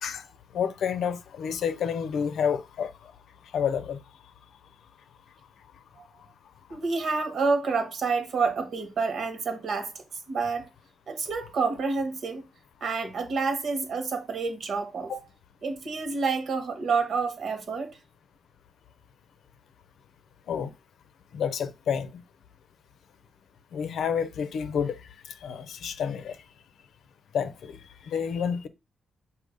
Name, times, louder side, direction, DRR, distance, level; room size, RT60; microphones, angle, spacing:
voice 1, 0.5-2.9 3.5-4.0 15.1-15.2 20.5-20.7 21.3-22.1 23.7-25.0 25.4-26.4 27.3-27.8 28.0-28.7, left 7 dB, 75° left, 0.7 m, -29 dB
voice 2, 6.7-9.9 10.3-10.6 11.1-12.5 12.8-15.2 15.6-18.0, right 4 dB, 55° right, 1.5 m, -28 dB
6.5 x 2.8 x 5.3 m
cardioid pair, 120°, 0 cm